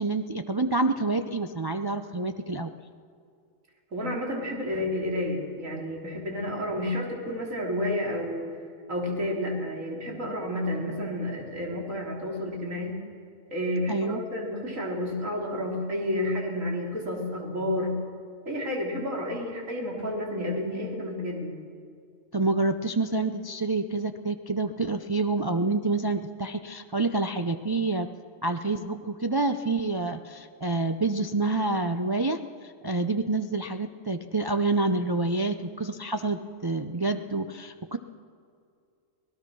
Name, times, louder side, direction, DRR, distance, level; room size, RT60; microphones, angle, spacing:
voice 1, 0.0-2.7 6.7-6.9 13.9-14.2 22.3-28.1 28.4-38.0, right 3 dB, 35° right, 7 dB, 0.4 m, -28 dB
voice 2, 3.9-8.5 8.9-13.0 13.5-18.0 18.5-21.6, left 1 dB, 75° right, -1 dB, 3.8 m, -30 dB
25.5 x 18.0 x 6.2 m, 2.3 s
omnidirectional pair, 1.4 m